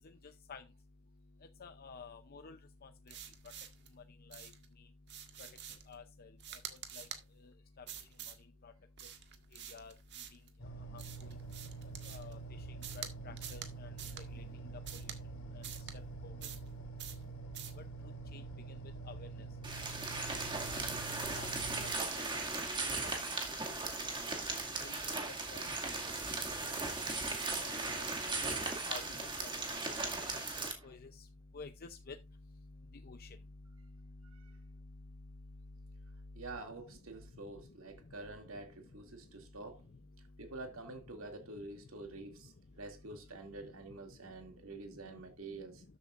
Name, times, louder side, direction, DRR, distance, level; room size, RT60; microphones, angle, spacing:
voice 1, 1.6-3.2 4.3-4.5 5.9-6.3 7.0-7.1 7.8-7.9 8.3-8.4 8.6-8.7 9.7-9.9 10.9-11.0 12.0-12.4 12.9-13.9 14.3-14.4 15.5-15.6 16.2-16.3 18.3-18.4 19.1-19.3 20.7-20.8 21.4-21.5 21.8-22.4 22.7-23.1 23.5-23.6 24.8-24.9 25.5-25.8 27.6-28.3 28.9-29.0 29.4-29.5 30.2-30.5 30.8-31.3 31.5-32.2 33.0-33.4, left 5 dB, 45° left, 0.6 m, -50 dB
sound 1, 3.1-3.9 4.3-4.7 5.1-5.9 6.4-7.2 7.9-8.4 9.0-10.5 11.0-12.3 12.8-13.1 13.4-13.7 14.0-14.2 14.8-15.2 15.6-15.9 16.4-16.7 17.0-17.2 17.5-17.8, right 9 dB, 55° right, 1.6 m, -47 dB
sound 2, 10.6-21.9, right 4 dB, 70° left, 3.2 m, -46 dB
sound 3, 19.6-30.7, right 3 dB, 20° right, 2.2 m, -37 dB
voice 2, 36.3-39.9 40.4-45.8, right 2 dB, 70° right, 2.5 m, -48 dB
13.0 x 8.3 x 2.5 m
head